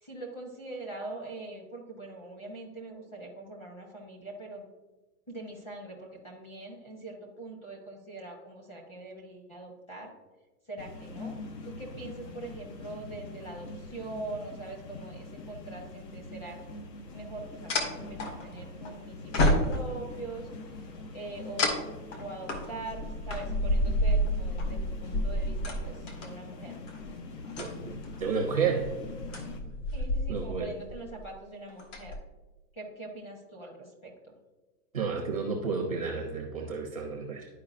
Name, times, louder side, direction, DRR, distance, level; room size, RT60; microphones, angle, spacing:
voice 1, 0.0-4.7 5.3-10.1 10.7-16.6 17.1-21.9 22.2-26.8 29.9-32.1 32.7-34.4, right 2 dB, 10° left, -1 dB, 0.7 m, -43 dB
sound 1, 10.8-29.6, left 3 dB, 85° left, 1.2 m, -44 dB
sound 2, 16.6-16.7 17.7-18.9 19.3-20.1 21.6-26.3 26.9-27.1 27.4-28.2 28.8-30.6 30.9-31.2 31.7-32.1, left 1 dB, 50° left, 1.4 m, -29 dB
voice 2, 27.6-28.9 30.3-30.7 34.9-37.5, right 5 dB, 25° right, 0 dB, 0.4 m, -31 dB
11.5 x 4.7 x 2.5 m, 1.2 s
hypercardioid pair, 160°, 48 cm